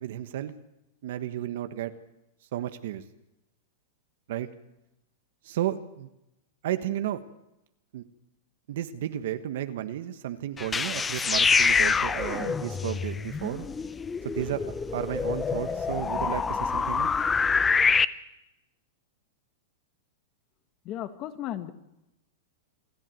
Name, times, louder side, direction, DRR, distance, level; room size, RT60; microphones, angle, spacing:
voice 1, 0.0-0.5 1.0-1.9 2.5-3.0 4.3-4.5 5.4-6.1 6.6-7.2 7.9-8.0 8.7-13.7 14.2-14.6 14.9-17.1, right 12 dB, 65° right, 9 dB, 1.4 m, -33 dB
sound 1, 10.6-18.1, left 5 dB, 15° left, 0.6 m, -26 dB
voice 2, 20.8-21.7, left 12 dB, 35° left, 10 dB, 1.7 m, -35 dB
27.5 x 11.0 x 9.3 m, 0.89 s
supercardioid pair, 150°, 0 cm